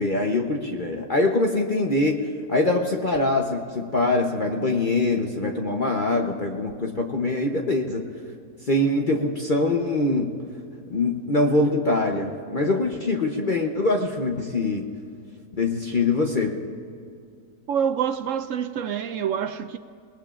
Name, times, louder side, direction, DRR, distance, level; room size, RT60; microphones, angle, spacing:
voice 1, 0.0-8.1 8.7-10.3 10.9-14.9 15.6-16.6, left 2 dB, 40° left, 0.9 m, -23 dB
voice 2, 17.7-19.8, right 8 dB, 70° right, 0.8 m, -26 dB
29.0 x 19.5 x 2.5 m
omnidirectional pair, 1.6 m